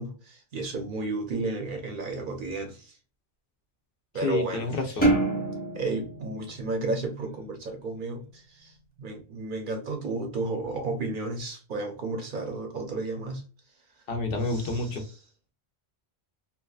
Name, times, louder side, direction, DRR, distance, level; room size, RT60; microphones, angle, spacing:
voice 1, 0.0-2.9 4.1-4.7 5.7-8.7 9.0-13.4 14.4-15.1, right 3 dB, 55° right, 3 dB, 0.7 m, -33 dB
voice 2, 4.2-5.2 14.1-15.0, left 3 dB, 65° left, 4 dB, 0.7 m, -29 dB
sound 1, 5.0-7.6, right 2 dB, 10° left, 0.8 m, -27 dB
2.8 x 2.2 x 2.3 m, 0.36 s
omnidirectional pair, 1.1 m